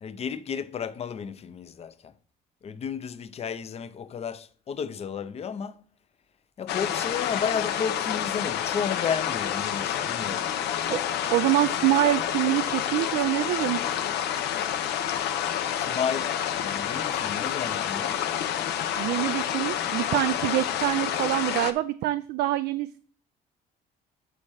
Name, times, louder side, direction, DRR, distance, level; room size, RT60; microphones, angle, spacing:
voice 1, 0.0-2.1 2.6-5.8 6.6-10.5 15.7-18.3, left 7 dB, 40° left, 0.6 m, -33 dB
sound 1, 6.7-21.7, left 10 dB, 80° left, 0.8 m, -29 dB
voice 2, 11.3-13.8 19.0-23.0, right 15 dB, 75° right, 0.4 m, -25 dB
9.1 x 4.3 x 4.8 m
cardioid pair, 110°, 17 cm